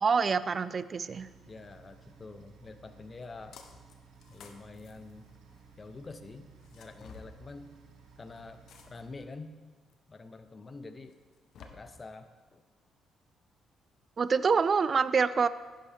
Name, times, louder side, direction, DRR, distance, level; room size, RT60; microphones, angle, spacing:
voice 1, 0.0-1.3 14.2-15.5, right 5 dB, 40° right, 15 dB, 0.4 m, -26 dB
sound 1, 1.1-9.1, right 6 dB, 80° right, 1.2 m, -57 dB
voice 2, 1.5-3.6 4.3-5.3 5.8-7.8 8.2-9.5 10.1-11.2 11.6-12.6, left 3 dB, 30° left, 10 dB, 0.7 m, -47 dB
sound 2, 3.5-3.9 4.2-5.8 6.6-7.3 8.7-9.2 9.9-10.0 11.1-11.7, left 6 dB, 70° left, 1.0 m, -52 dB
10.5 x 10.0 x 3.5 m, 1.4 s
cardioid pair, 90°, 0 cm